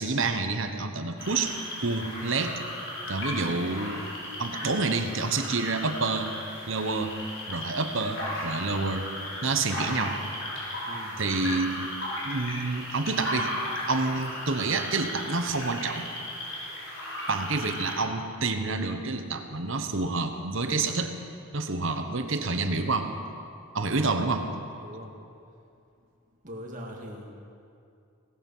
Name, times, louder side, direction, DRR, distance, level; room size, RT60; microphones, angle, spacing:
voice 1, 0.0-1.5 1.8-2.6 3.1-4.0 4.4-6.3 6.7-7.1 7.5-9.1 9.4-10.2 11.2-11.9 12.2-13.5 13.9-16.1 17.3-21.1 21.5-23.1 23.7-24.5, right 3 dB, 60° right, 7 dB, 1.1 m, -28 dB
sound 1, 1.2-17.9, left 1 dB, 60° left, 4.7 m, -36 dB
voice 2, 10.9-11.2 24.8-25.1 26.4-27.3, equal, 35° right, 0 dB, 2.0 m, -41 dB
18.0 x 13.5 x 5.6 m, 2.5 s
head